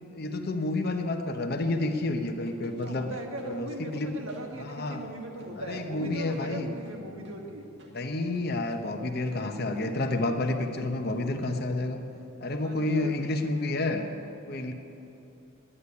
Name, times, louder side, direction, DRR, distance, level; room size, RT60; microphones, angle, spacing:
voice 1, 0.1-3.1 3.4-4.2 4.6-5.0 5.6-6.7 7.9-12.0 12.4-14.1 14.5-14.7, left 2 dB, 50° left, 5 dB, 1.0 m, -30 dB
sound 1, 2.3-8.0 8.3-11.9, left 1 dB, 55° right, 1.7 m, -55 dB
voice 2, 2.8-7.6 12.5-13.2, right 1 dB, 80° right, 2 dB, 1.7 m, -39 dB
10.0 x 9.9 x 9.8 m, 2.9 s
head